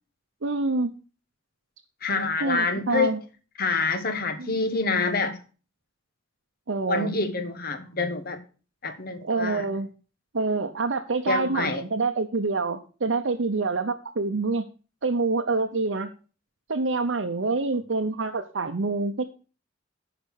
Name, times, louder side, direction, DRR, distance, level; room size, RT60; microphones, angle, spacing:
voice 1, 0.4-0.9 2.4-3.2 4.4-4.6 6.7-7.2 9.2-9.9 10.3-14.6 15.0-16.1 16.7-19.2, right 3 dB, 70° right, 0.7 m, -26 dB
voice 2, 2.0-3.2 3.6-5.4 6.8-8.4 8.8-9.7 11.3-11.8, left 4 dB, 50° left, 1.2 m, -27 dB
9.6 x 5.2 x 6.5 m
head